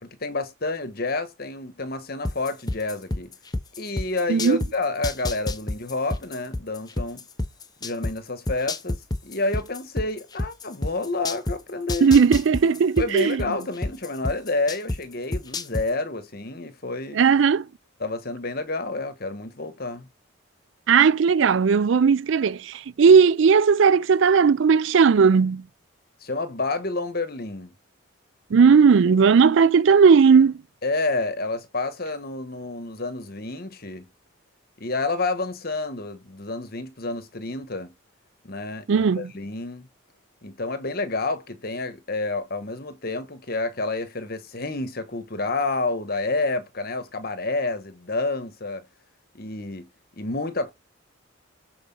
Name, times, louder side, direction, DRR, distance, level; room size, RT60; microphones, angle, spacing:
voice 1, 0.2-3.3 3.8-7.3 7.8-9.0 9.2-12.2 13.0-17.2 18.0-20.1 26.2-27.7 29.1-29.2 30.8-34.1 34.8-37.9 38.4-39.9 40.4-48.9 49.3-49.9 50.2-50.7, left 3 dB, 50° left, 1.3 m, -29 dB
sound 1, 2.2-4.7 5.0-8.1 8.5-11.6 11.9-15.0 15.3-15.8, left 2 dB, 20° left, 0.6 m, -28 dB
voice 2, 4.3-4.6 12.0-13.4 17.1-17.7 20.9-25.6 28.5-30.6 38.9-39.3, right 6 dB, 65° right, 0.4 m, -17 dB
8.0 x 4.7 x 5.4 m
head